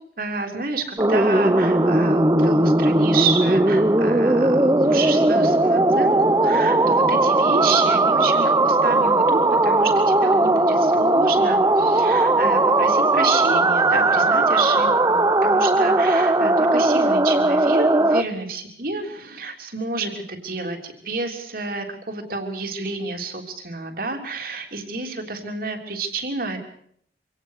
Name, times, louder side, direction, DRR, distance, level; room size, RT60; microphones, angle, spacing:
voice 1, 0.2-26.6, right 3 dB, 55° right, 4 dB, 3.4 m, -29 dB
sound 1, 1.0-18.2, right 2 dB, 20° right, 0.8 m, -18 dB
25.5 x 18.0 x 6.6 m, 0.65 s
head